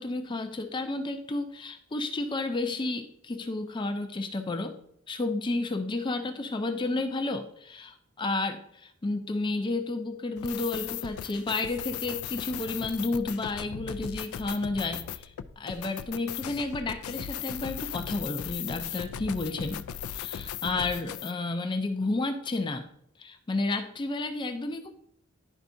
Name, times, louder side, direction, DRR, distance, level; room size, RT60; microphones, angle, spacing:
voice 1, 0.0-4.8 5.1-19.8 20.1-22.9 23.2-24.9, left 2 dB, 20° left, 7 dB, 0.4 m, -31 dB
sound 1, 10.4-21.3, left 9 dB, 85° left, 0.4 m, -37 dB
11.0 x 4.5 x 2.6 m, 0.70 s
head